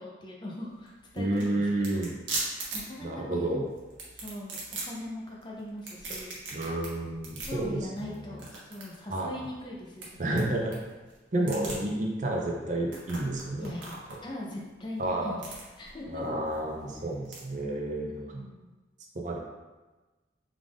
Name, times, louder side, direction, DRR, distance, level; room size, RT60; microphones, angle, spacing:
voice 1, 0.0-2.1 2.4-3.6 4.1-6.4 7.4-10.5 11.4-11.9 13.6-13.9 14.2-15.4 15.8-16.2 18.3-18.7, left 1 dB, 25° left, -2 dB, 0.5 m, -40 dB
sound 1, 0.7-17.4, right 2 dB, 85° right, 0.9 m, -41 dB
voice 2, 1.2-2.2 3.0-3.7 6.5-8.2 9.1-9.3 10.2-10.7 11.3-13.7 15.0-15.4 16.1-18.4 19.1-19.4, right 1 dB, 40° right, -1 dB, 0.5 m, -30 dB
3.7 x 2.4 x 3.5 m, 1.2 s
head